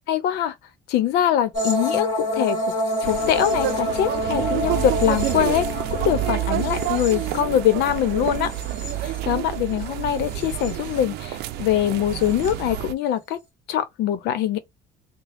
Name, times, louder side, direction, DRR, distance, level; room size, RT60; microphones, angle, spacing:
voice 1, 0.1-0.5 0.9-2.1 2.3-2.6 3.0-5.7 6.0-8.5 9.0-13.4 13.7-14.6, left 11 dB, 85° left, 0.8 m, -23 dB
sound 1, 1.5-9.7 10.1-11.0 12.2-12.5, left 1 dB, 25° left, 2.5 m, -28 dB
sound 2, 3.0-12.9, right 13 dB, 80° right, 0.5 m, -28 dB
3.8 x 2.2 x 3.4 m
cardioid pair, 110°, 17 cm